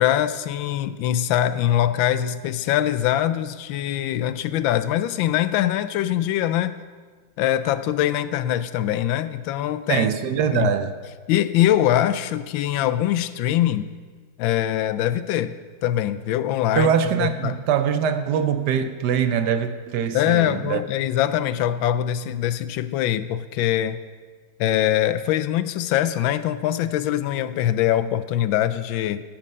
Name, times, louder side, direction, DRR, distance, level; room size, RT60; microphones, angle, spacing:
voice 1, 0.0-6.8 7.4-10.1 10.5-10.7 11.3-13.9 14.4-15.5 15.8-16.9 17.2-17.6 20.1-24.0 24.6-29.2, left 12 dB, 90° left, 14 dB, 1.3 m, -23 dB
voice 2, 9.9-10.9 16.7-20.8, right 8 dB, 70° right, 10 dB, 1.1 m, -23 dB
14.5 x 7.5 x 5.4 m, 1.5 s
omnidirectional pair, 2.1 m